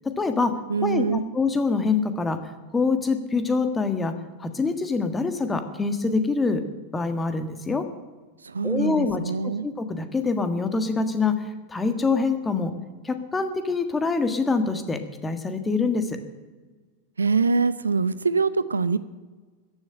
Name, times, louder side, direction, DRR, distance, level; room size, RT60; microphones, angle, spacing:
voice 1, 0.2-0.5 0.8-2.4 2.7-4.1 4.4-6.6 6.9-7.8 8.6-9.2 9.6-12.7 13.0-16.2, left 4 dB, 15° left, 8 dB, 1.6 m, -25 dB
voice 2, 0.7-1.2 8.4-9.7 17.2-19.0, right 4 dB, 75° right, 16 dB, 0.5 m, -24 dB
14.5 x 7.0 x 9.9 m, 1.4 s
figure-of-eight pair, 90°, 0 cm